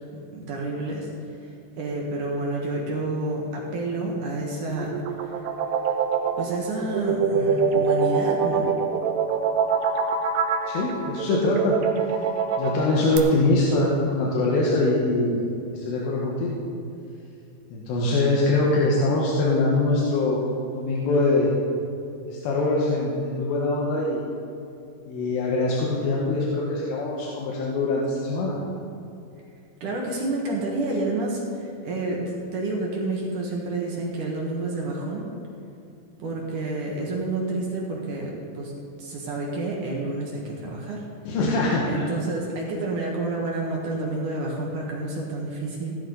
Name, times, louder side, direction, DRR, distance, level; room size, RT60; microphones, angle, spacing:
voice 1, 0.3-1.1 1.4-4.9 5.2-5.4 6.4-8.8 29.8-35.3 36.2-38.7 39.0-41.1 41.9-46.0, right 2 dB, 60° right, -2 dB, 2.6 m, -29 dB
sound 1, 4.7-13.2, right 6 dB, 85° right, 3.0 m, -24 dB
voice 2, 10.7-11.8 12.6-15.4 15.7-16.6 17.7-20.4 20.7-21.5 22.3-24.2 25.1-28.6 41.3-42.0, left 2 dB, 85° left, -3 dB, 3.6 m, -23 dB
16.5 x 12.0 x 4.0 m, 2.7 s
omnidirectional pair, 4.8 m